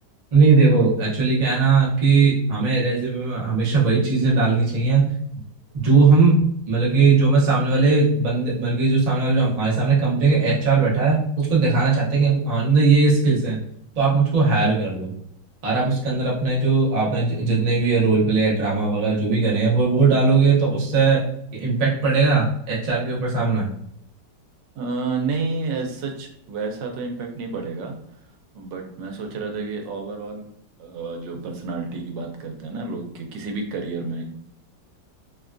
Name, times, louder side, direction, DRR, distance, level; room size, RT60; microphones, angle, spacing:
voice 1, 0.3-5.1 5.7-6.3 6.7-13.6 14.0-15.1 15.6-21.2 21.5-23.7, right 4 dB, 55° right, -5 dB, 0.4 m, -19 dB
voice 2, 24.7-28.0 28.5-30.5 30.8-34.3, right 4 dB, 85° right, 3 dB, 1.3 m, -30 dB
3.1 x 2.2 x 2.4 m, 0.73 s
omnidirectional pair, 1.9 m